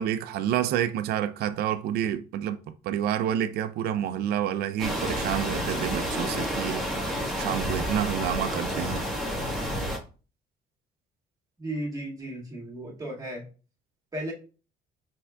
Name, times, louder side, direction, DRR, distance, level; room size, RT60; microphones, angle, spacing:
voice 1, 0.0-2.6 2.8-6.9 7.4-9.1, right 10 dB, 70° right, 0.4 m, -28 dB
sound 1, 4.8-10.0, equal, ahead, 1.4 m, -30 dB
voice 2, 11.6-13.5 14.1-14.3, right 1 dB, 20° right, 1.8 m, -35 dB
5.4 x 3.5 x 2.3 m
cardioid pair, 110°, 17 cm